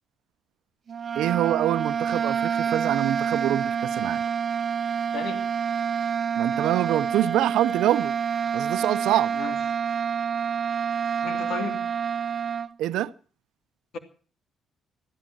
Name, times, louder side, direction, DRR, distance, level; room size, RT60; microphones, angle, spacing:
sound 1, 0.9-12.7, right 7 dB, 45° right, 0.7 m, -27 dB
voice 1, 1.1-4.2 6.4-9.3 12.8-13.1, right 13 dB, 85° right, 0.7 m, -25 dB
voice 2, 5.1-5.5 9.3-9.6 11.2-11.9, left 5 dB, 70° left, 2.8 m, -34 dB
14.5 x 13.0 x 7.6 m
cardioid pair, 90°, 0 cm